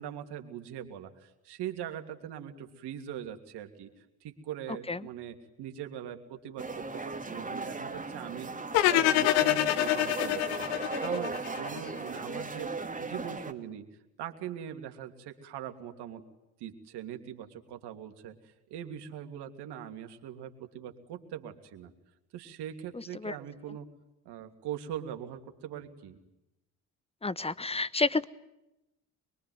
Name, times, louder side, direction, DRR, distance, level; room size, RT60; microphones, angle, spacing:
voice 1, 0.0-8.5 8.9-10.7 11.0-13.9 14.2-16.2 16.6-21.9 22.3-23.9 24.2-26.2, right 10 dB, 60° right, 6 dB, 2.9 m, -41 dB
sound 1, 6.6-13.5, right 3 dB, 20° right, 2.7 m, -37 dB
sound 2, 8.7-11.9, left 14 dB, 70° left, 1.4 m, -26 dB
voice 2, 27.2-28.3, left 3 dB, 15° left, 17 dB, 1.2 m, -29 dB
24.5 x 23.5 x 9.5 m, 0.92 s
hypercardioid pair, 55°, 44 cm